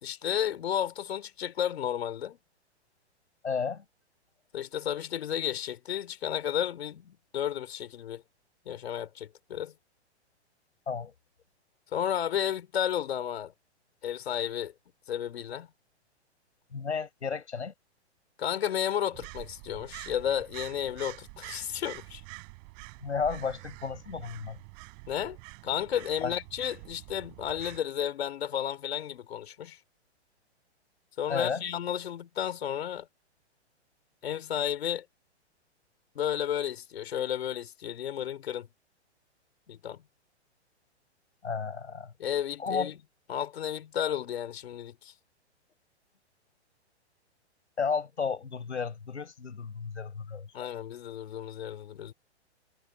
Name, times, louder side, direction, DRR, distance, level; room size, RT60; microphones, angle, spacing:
voice 1, 0.0-2.4 4.5-8.2 8.6-9.7 11.9-13.5 14.0-14.7 15.1-15.7 18.4-22.2 25.1-25.4 25.6-29.8 31.2-33.1 34.2-35.0 36.1-38.7 39.7-40.0 42.2-42.9 43.3-45.1 50.5-52.1, left 10 dB, 65° left, 3.4 m, -32 dB
voice 2, 3.4-3.8 10.9-11.1 16.7-17.7 23.0-24.6 26.2-26.4 31.3-31.6 41.4-42.1 42.6-43.0 47.8-50.7, left 5 dB, 80° left, 5.2 m, -33 dB
sound 1, 19.1-27.8, right 34 dB, 40° right, 5.7 m, -46 dB
figure-of-eight pair, 115°, 34 cm